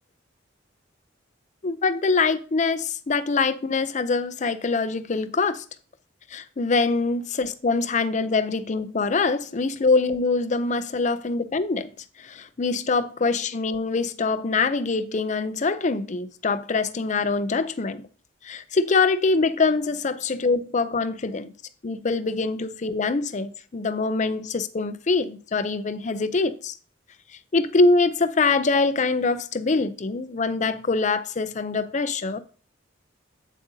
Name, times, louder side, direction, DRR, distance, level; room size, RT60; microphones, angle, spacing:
voice 1, 1.6-5.6 6.3-11.9 12.2-18.1 18.4-21.5 21.8-26.7 27.5-32.4, left 3 dB, 40° left, 0.5 m, -24 dB
8.3 x 7.5 x 2.7 m
head